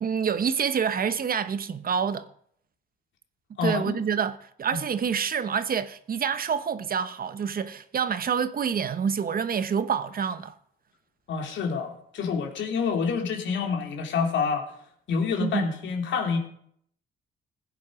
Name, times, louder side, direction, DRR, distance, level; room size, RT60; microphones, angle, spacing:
voice 1, 0.0-2.3 3.6-10.5 15.4-15.7, right 7 dB, 50° right, 1.0 m, -27 dB
voice 2, 3.6-4.0 4.7-4.8 11.3-14.7 15.1-16.4, left 5 dB, 70° left, 3.1 m, -27 dB
16.0 x 9.6 x 5.1 m
cardioid pair, 90°, 20 cm